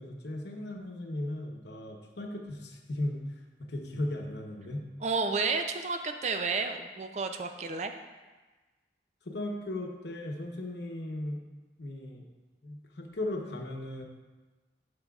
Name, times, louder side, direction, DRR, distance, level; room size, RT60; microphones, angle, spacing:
voice 1, 0.0-3.2 3.7-4.8 9.2-11.4 11.8-12.3 12.6-14.0, left 1 dB, 70° left, 1 dB, 0.9 m, -36 dB
voice 2, 5.0-7.9, right 4 dB, 40° right, 6 dB, 0.4 m, -31 dB
8.8 x 6.7 x 2.4 m, 1.2 s
head